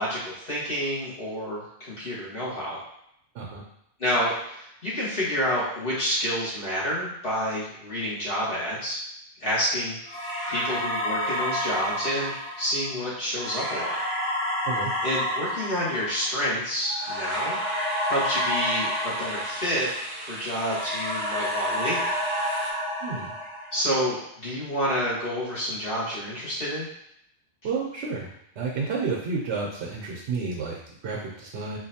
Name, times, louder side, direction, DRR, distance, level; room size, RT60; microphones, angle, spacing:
voice 1, 0.0-2.8 4.0-9.0 9.4-10.0 10.5-14.0 15.0-19.9 20.2-22.0 23.7-26.9, equal, 55° left, -8 dB, 1.8 m, -29 dB
sound 1, 10.1-20.3 20.6-24.0, equal, 70° left, 2.0 m, -30 dB
sound 2, 17.0-22.7, right 1 dB, 30° right, 0.4 m, -39 dB
voice 2, 23.0-23.3 27.6-31.8, right 4 dB, 80° right, -3 dB, 1.0 m, -31 dB
4.3 x 2.6 x 2.8 m, 0.74 s
omnidirectional pair, 1.2 m